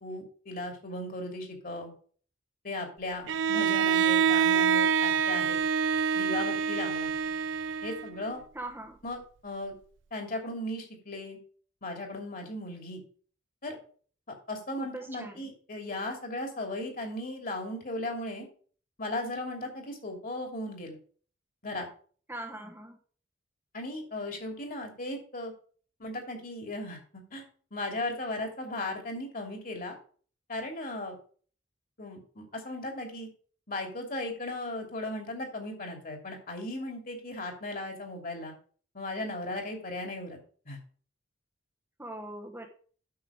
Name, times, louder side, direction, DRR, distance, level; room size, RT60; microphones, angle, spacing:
voice 1, 0.0-1.9 2.6-5.6 6.1-7.1 7.8-8.4 9.0-9.7 10.1-11.4 11.8-13.0 13.6-13.8 14.5-18.5 19.0-21.0 21.6-21.9 23.7-25.5 26.0-27.0 27.3-27.4 27.7-30.0 30.5-31.2 32.0-33.3 33.7-38.5 38.9-40.4 40.7-40.8, left 1 dB, 45° left, 3 dB, 2.7 m, -36 dB
Bowed string instrument, 3.3-8.3, right 7 dB, 70° right, 0.5 m, -26 dB
voice 2, 8.5-9.0 14.8-15.5 22.3-23.0 42.0-42.7, right 1 dB, 10° right, 3 dB, 1.0 m, -41 dB
9.5 x 6.6 x 4.9 m, 0.44 s
head